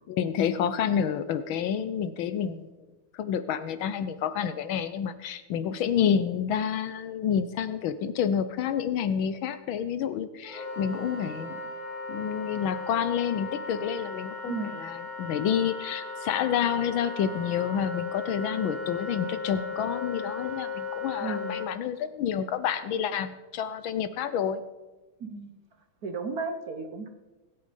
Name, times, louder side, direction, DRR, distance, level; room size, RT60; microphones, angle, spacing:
voice 1, 0.1-2.6 3.1-11.6 12.1-24.6, left 8 dB, 70° left, 12 dB, 1.4 m, -29 dB
Wind instrument woodwind instrument, 10.4-21.7, left 3 dB, 20° left, 3.8 m, -37 dB
voice 2, 14.4-14.8 21.2-21.7 25.2-25.5 26.0-27.1, right 4 dB, 50° right, 7 dB, 1.3 m, -34 dB
21.0 x 8.6 x 5.1 m, 1.2 s
omnidirectional pair, 2.4 m